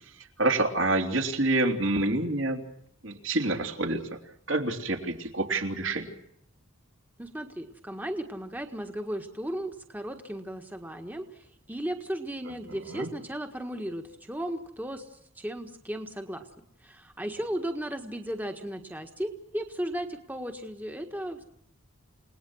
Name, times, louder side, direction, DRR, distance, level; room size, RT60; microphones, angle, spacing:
voice 1, 0.4-2.6 3.0-4.2 4.5-6.1 12.9-13.1, right 2 dB, 65° right, 4 dB, 3.4 m, -27 dB
voice 2, 7.2-16.5 16.8-21.4, right 1 dB, 10° right, 5 dB, 1.6 m, -35 dB
29.5 x 19.5 x 6.4 m, 0.74 s
head